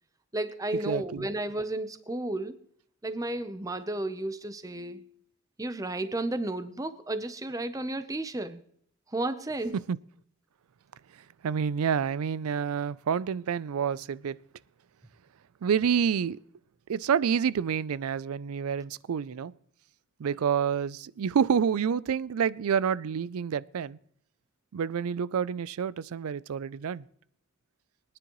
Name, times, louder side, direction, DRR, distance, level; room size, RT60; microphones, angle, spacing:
voice 1, 0.3-2.6 3.0-5.1 5.6-8.6 9.1-9.8, right 2 dB, 15° right, 0.7 m, -33 dB
voice 2, 0.9-1.3 9.9-10.0 11.4-14.4 15.6-16.4 16.9-19.5 20.2-24.0 24.7-27.0, right 7 dB, 85° right, 0.4 m, -28 dB
23.5 x 9.8 x 3.1 m
head